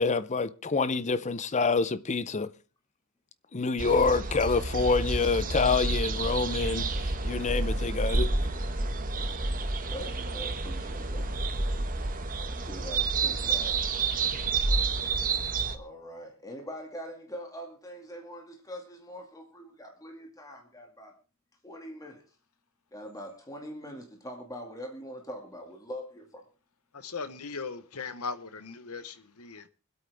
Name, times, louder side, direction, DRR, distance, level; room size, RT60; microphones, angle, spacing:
voice 1, 0.0-2.5 3.5-6.9 7.2-8.3, left 4 dB, 30° left, 0.6 m, -26 dB
sound 1, 3.8-15.8, right 3 dB, 40° right, 1.2 m, -29 dB
voice 2, 9.9-11.3 12.5-13.8 15.7-21.1 21.6-22.2 22.9-26.4, equal, 15° left, 2.2 m, -43 dB
voice 3, 26.9-29.7, left 4 dB, 85° left, 1.1 m, -38 dB
25.0 x 8.5 x 3.5 m
head